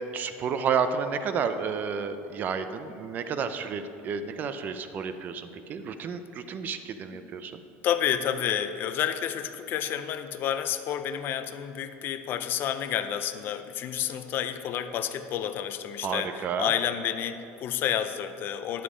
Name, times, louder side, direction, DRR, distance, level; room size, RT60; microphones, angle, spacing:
voice 1, 0.0-7.6 16.0-16.7, right 6 dB, 30° right, 10 dB, 0.5 m, -31 dB
voice 2, 7.8-18.8, left 9 dB, 40° left, 10 dB, 0.5 m, -30 dB
10.0 x 7.3 x 5.0 m, 2.7 s
cardioid pair, 155°, 6 cm